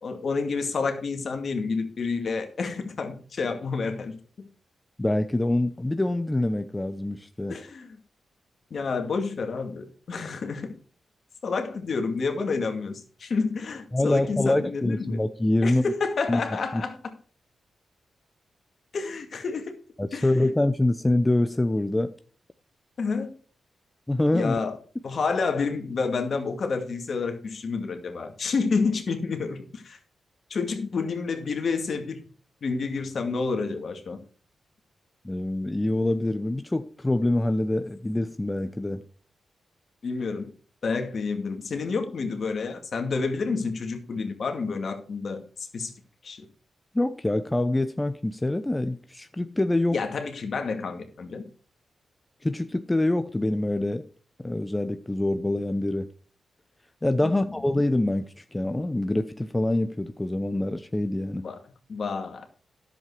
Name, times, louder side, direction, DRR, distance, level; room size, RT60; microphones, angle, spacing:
voice 1, 0.0-4.5 7.5-8.0 8.7-10.7 11.4-15.2 15.6-17.1 18.9-19.8 20.1-20.5 23.0-23.3 24.3-24.8 25.0-30.0 30.5-32.2 32.6-34.2 40.0-40.5 40.8-45.9 46.2-46.4 49.9-51.4 57.2-57.5 61.3-61.6 61.9-62.5, left 4 dB, 65° left, 2.1 m, -29 dB
voice 2, 5.0-7.6 13.9-15.8 16.3-16.4 16.7-16.8 20.0-22.1 24.1-24.5 35.2-39.0 46.9-50.0 52.4-54.0 54.4-56.1 57.0-61.4, left 1 dB, 20° left, 0.8 m, -25 dB
10.5 x 7.6 x 4.7 m
supercardioid pair, 45°, 0 cm